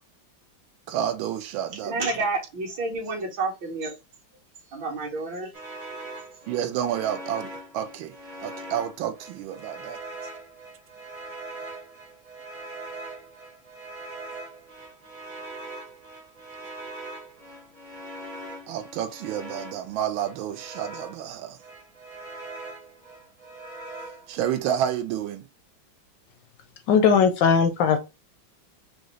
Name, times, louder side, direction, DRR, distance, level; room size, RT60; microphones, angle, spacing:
voice 1, 0.9-2.1 6.5-8.1 8.4-10.0 18.7-21.6 24.3-25.4, right 10 dB, 85° right, 1.4 m, -30 dB
voice 2, 1.8-3.9 4.7-5.5, right 3 dB, 70° right, 1.9 m, -29 dB
sound 1, 5.5-21.3 21.6-24.7, right 2 dB, 30° right, 0.7 m, -41 dB
voice 3, 26.9-28.0, left 6 dB, 75° left, 1.2 m, -19 dB
4.9 x 2.5 x 3.1 m
omnidirectional pair, 2.2 m